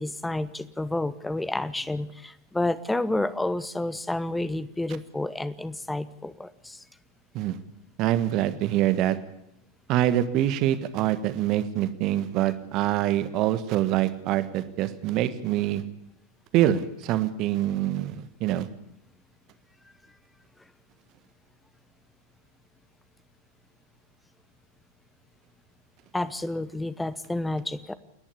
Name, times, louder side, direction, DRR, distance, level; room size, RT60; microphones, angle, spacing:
voice 1, 0.0-6.8 26.1-27.9, left 2 dB, 5° left, 16 dB, 1.0 m, -30 dB
voice 2, 8.0-9.2 9.9-15.8 16.5-18.7, right 12 dB, 40° right, 12 dB, 1.5 m, -25 dB
28.5 x 11.0 x 8.5 m, 0.81 s
figure-of-eight pair, 90°, 0 cm